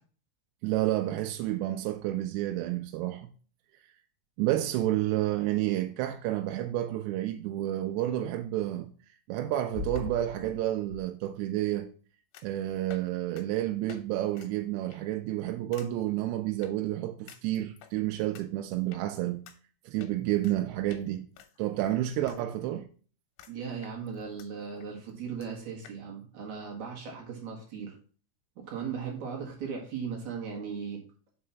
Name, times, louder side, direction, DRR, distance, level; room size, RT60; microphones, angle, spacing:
voice 1, 0.6-3.3 4.4-8.9 9.3-11.9 12.4-19.4 19.9-21.3 21.6-22.9, right 14 dB, 85° right, 2.6 m, -30 dB
sound 1, 9.7-11.0 12.3-12.6 12.9-13.1 13.4-13.5 13.9-14.0 14.3-14.5 14.9-15.2 15.7-15.9 16.6-16.7 17.3-17.9 18.3-18.4 18.9-19.0 19.5-19.6 20.0-20.6 20.9-21.0 21.4-22.4 22.7-22.8 23.4-23.5 23.8-24.5 24.8-24.9 25.1-25.2 25.4-25.5 25.8-26.0, left 6 dB, 85° left, 3.2 m, -44 dB
voice 2, 23.5-27.9 28.6-31.0, right 6 dB, 65° right, 1.9 m, -37 dB
6.0 x 4.8 x 5.6 m
omnidirectional pair, 5.4 m